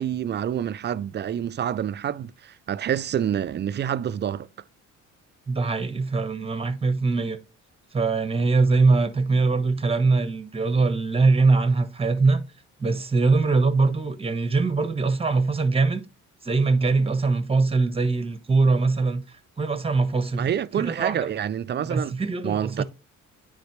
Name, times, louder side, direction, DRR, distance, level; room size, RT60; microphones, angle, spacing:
voice 1, 0.0-4.5 20.4-22.1 22.4-22.8, right 9 dB, 35° right, 0.4 m, -27 dB
voice 2, 5.5-7.4 7.9-12.4 12.8-16.0 16.4-19.2 19.6-20.5 20.8-21.2 21.8-22.8, right 3 dB, 20° right, 1.0 m, -22 dB
9.2 x 4.1 x 3.1 m
cardioid pair, 90°, 30 cm